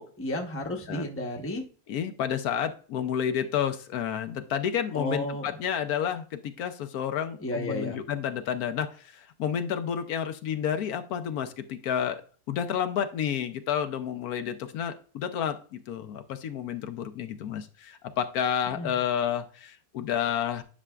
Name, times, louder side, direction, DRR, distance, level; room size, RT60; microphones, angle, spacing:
voice 1, 0.0-1.6 4.9-5.5 7.4-8.0 18.7-19.0, left 1 dB, 10° left, 1 dB, 0.8 m, -32 dB
voice 2, 1.9-12.2 12.5-20.6, left 9 dB, 75° left, 9 dB, 1.1 m, -30 dB
9.9 x 6.1 x 2.3 m, 0.40 s
omnidirectional pair, 1.6 m